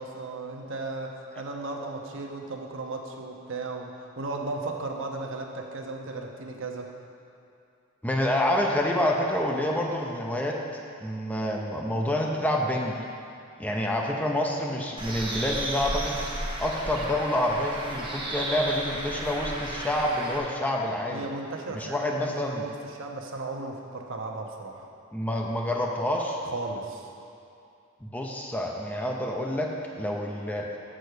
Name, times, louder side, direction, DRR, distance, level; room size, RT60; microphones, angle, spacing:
voice 1, 0.0-6.9 21.1-24.9 26.4-27.1, right 3 dB, 65° right, 1 dB, 0.9 m, -36 dB
voice 2, 8.0-10.6 11.0-13.0 13.6-16.2 16.6-21.2 21.7-22.6 25.1-26.4 28.0-29.7 29.9-30.7, left 1 dB, 5° left, 0 dB, 0.6 m, -27 dB
Bird, 15.0-20.4, right 1 dB, 25° right, 1.0 m, -33 dB
6.7 x 6.2 x 6.7 m, 2.6 s
head